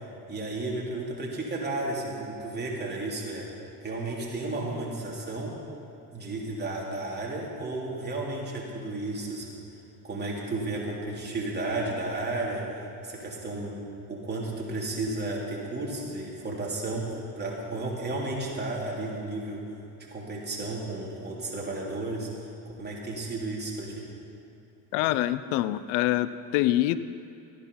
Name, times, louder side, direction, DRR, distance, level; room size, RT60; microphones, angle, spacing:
voice 1, 0.3-3.5 3.8-5.6 6.1-9.6 10.0-12.7 13.0-13.8 14.1-19.6 20.1-22.3 22.8-24.1, right 2 dB, 20° right, -3 dB, 3.3 m, -33 dB
voice 2, 24.9-27.0, left 15 dB, 85° left, 15 dB, 0.6 m, -25 dB
14.5 x 10.5 x 5.5 m, 2.9 s
supercardioid pair, 95°, 45 cm